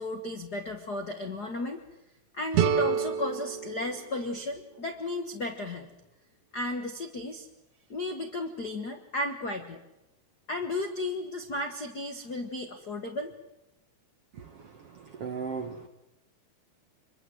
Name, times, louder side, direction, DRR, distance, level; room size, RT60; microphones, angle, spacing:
voice 1, 0.0-1.8 2.3-5.9 6.5-7.5 7.9-9.8 10.5-13.3, left 2 dB, 65° left, 6 dB, 0.9 m, -34 dB
sound 1, 2.5-5.4, right 8 dB, 75° right, 3.7 m, -30 dB
voice 2, 14.4-15.9, right 5 dB, 60° right, 6 dB, 1.6 m, -38 dB
26.0 x 23.0 x 7.9 m, 0.92 s
omnidirectional pair, 4.4 m